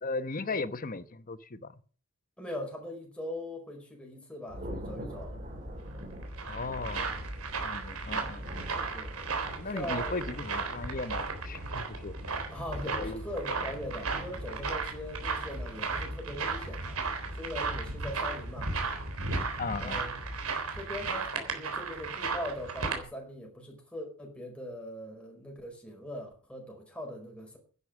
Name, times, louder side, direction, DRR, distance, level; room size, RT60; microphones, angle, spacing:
voice 1, 0.0-1.8 6.5-7.1 7.6-8.7 9.6-12.4 12.9-13.3 19.6-20.0, left 3 dB, 40° left, 1.0 m, -37 dB
voice 2, 2.4-5.4 8.1-8.3 8.9-9.1 9.7-10.2 12.3-17.0 17.3-18.7 19.8-20.1 20.8-27.6, left 1 dB, 5° left, 4.8 m, -41 dB
Thunder, 4.5-20.5, equal, 40° right, 5.6 m, -42 dB
sound 1, 6.0-23.0, right 4 dB, 90° right, 3.7 m, -35 dB
11.0 x 9.8 x 7.4 m
head